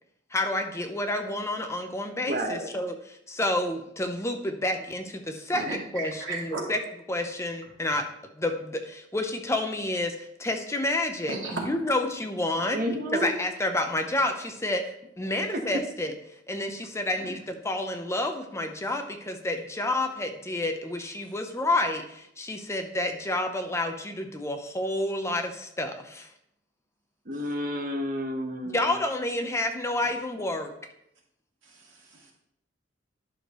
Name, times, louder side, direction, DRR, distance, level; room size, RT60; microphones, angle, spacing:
voice 1, 0.3-6.8 7.1-8.1 8.3-12.8 13.1-16.1 16.5-26.3 28.7-30.7, left 1 dB, 15° left, 5 dB, 0.7 m, -29 dB
voice 2, 2.3-2.7 12.7-13.3 27.3-28.9, equal, 50° right, 1 dB, 1.2 m, -30 dB
voice 3, 5.5-6.7 11.3-11.6 31.6-32.3, right 3 dB, 80° right, -2 dB, 2.3 m, -35 dB
10.5 x 6.4 x 3.1 m, 0.77 s
head